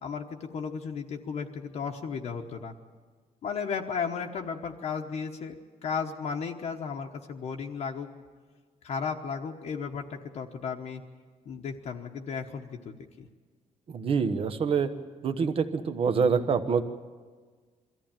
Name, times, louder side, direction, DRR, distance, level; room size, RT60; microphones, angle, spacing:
voice 1, 0.0-2.7 3.4-5.5 5.8-8.2 8.8-11.0 11.4-13.3, left 6 dB, 55° left, 1 dB, 1.1 m, -34 dB
voice 2, 13.9-14.9 15.2-16.8, right 5 dB, 45° right, 9 dB, 1.1 m, -26 dB
23.5 x 14.5 x 9.0 m, 1.5 s
cardioid pair, 170°, 14 cm